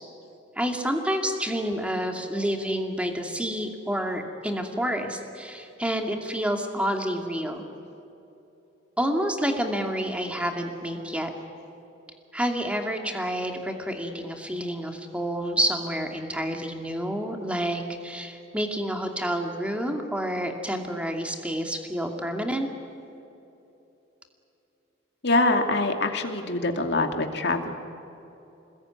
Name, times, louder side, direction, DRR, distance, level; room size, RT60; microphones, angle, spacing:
voice 1, 0.6-7.6 9.0-11.3 12.3-22.7, equal, 5° right, 3 dB, 2.5 m, -29 dB
voice 2, 25.2-27.7, left 2 dB, 60° left, 5 dB, 2.5 m, -24 dB
28.0 x 20.5 x 9.7 m, 2.9 s
head